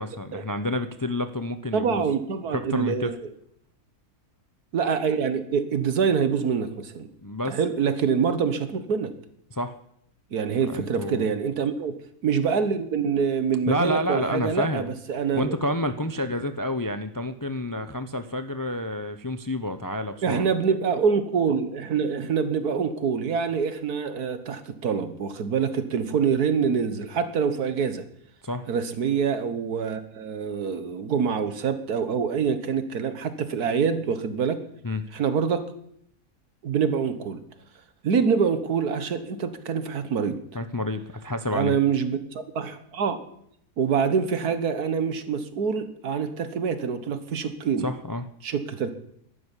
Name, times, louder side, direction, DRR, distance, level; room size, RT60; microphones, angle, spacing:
voice 1, 0.0-2.1 2.5-3.1 7.2-7.6 9.5-9.7 10.7-11.3 13.7-14.9 15.3-20.5 28.4-28.7 34.8-35.0 40.5-41.8 47.8-48.3, left 1 dB, 25° left, 9 dB, 0.4 m, -29 dB
voice 2, 1.7-3.2 4.7-7.1 7.5-9.1 10.3-11.9 12.2-15.9 20.2-28.0 28.7-34.6 35.1-35.6 36.6-37.4 38.0-40.4 41.5-43.2 43.8-47.9 48.4-48.9, right 6 dB, 80° right, 10 dB, 1.8 m, -25 dB
12.0 x 9.8 x 9.9 m, 0.71 s
omnidirectional pair, 1.6 m